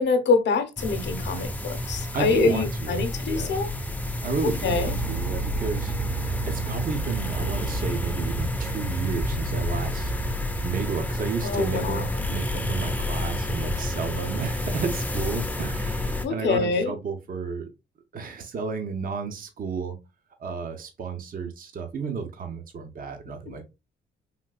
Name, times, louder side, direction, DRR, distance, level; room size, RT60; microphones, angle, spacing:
voice 1, 0.0-3.7 4.4-4.9 11.4-12.0 16.2-16.9, left 4 dB, 60° left, 0.7 m, -25 dB
sound 1, 0.8-16.3, left 1 dB, 10° left, 0.4 m, -29 dB
voice 2, 2.1-3.6 4.2-10.1 10.4-17.7 18.1-20.0 20.4-23.7, right 5 dB, 45° right, 0.7 m, -32 dB
Piano, 4.7-11.0, right 9 dB, 85° right, 0.5 m, -34 dB
3.6 x 2.7 x 2.3 m
cardioid pair, 90°, 20 cm